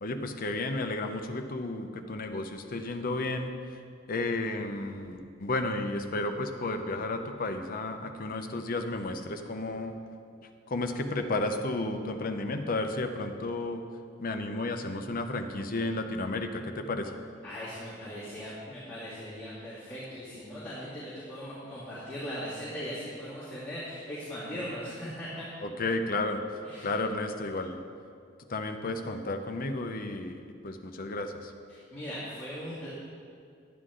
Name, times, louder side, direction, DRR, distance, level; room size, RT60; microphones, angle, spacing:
voice 1, 0.0-3.5 4.1-10.0 10.7-13.8 14.2-17.1 25.6-26.4 26.8-27.8 28.5-30.4 30.6-31.5, left 2 dB, 45° left, 6 dB, 0.7 m, -32 dB
voice 2, 17.4-25.5 26.6-26.9 31.7-32.9, equal, 10° left, -12 dB, 2.5 m, -39 dB
11.0 x 9.6 x 3.8 m, 2.3 s
head